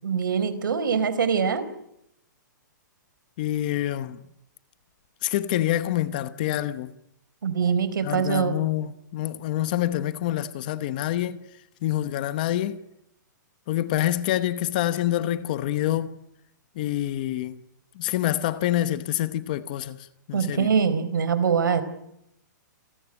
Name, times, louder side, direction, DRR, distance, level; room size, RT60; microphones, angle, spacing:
voice 1, 0.0-1.7 7.4-8.5 20.3-21.8, right 6 dB, 80° right, 4.3 m, -23 dB
voice 2, 3.4-4.2 5.2-6.9 8.0-11.4 11.8-12.8 13.7-16.1 16.8-17.6 18.0-20.7, left 13 dB, 25° left, 1.0 m, -26 dB
28.0 x 17.5 x 10.0 m
hypercardioid pair, 180°, 11 cm